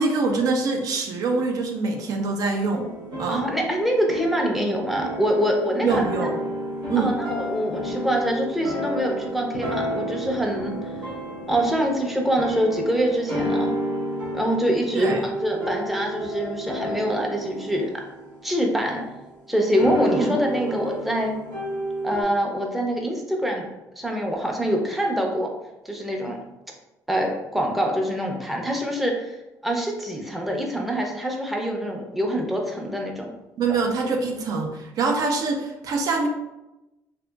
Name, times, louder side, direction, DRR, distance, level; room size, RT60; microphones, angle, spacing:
voice 1, 0.0-2.9 3.2-3.4 5.8-6.3 6.9-7.1 14.9-15.2 20.1-20.3 33.6-36.3, right 4 dB, 65° right, 2 dB, 0.4 m, -24 dB
sound 1, 2.7-19.1 19.8-22.2, equal, 85° right, 1.1 m, -31 dB
voice 2, 3.3-6.1 7.0-10.8 11.5-13.7 14.3-17.9 18.4-19.1 19.5-21.4 22.0-23.7 23.9-25.5 25.8-26.4 27.1-29.3 29.6-33.3, equal, ahead, 0 dB, 0.5 m, -25 dB
sound 2, 9.5-14.2, left 4 dB, 85° left, 0.3 m, -41 dB
2.7 x 2.5 x 2.2 m, 0.98 s
cardioid pair, 95°, 7 cm